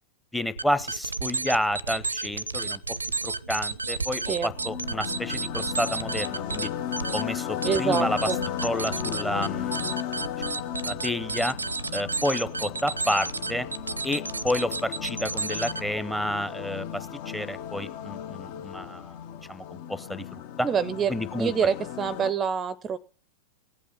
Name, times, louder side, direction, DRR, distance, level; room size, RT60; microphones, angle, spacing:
voice 1, 0.3-2.8 3.2-6.7 7.1-8.3 8.6-9.8 10.4-11.6 11.9-13.7 14.0-19.2 19.5-20.7 21.1-21.5, left 1 dB, 5° left, 12 dB, 0.9 m, -30 dB
sound 1, 0.6-16.0, right 3 dB, 80° right, 0.5 m, -32 dB
sound 2, 4.1-22.3, left 10 dB, 50° left, 0.9 m, -35 dB
voice 2, 7.6-8.4 20.6-23.0, right 7 dB, 25° right, 20 dB, 0.5 m, -26 dB
18.5 x 8.6 x 5.4 m, 0.42 s
figure-of-eight pair, 90°, 0 cm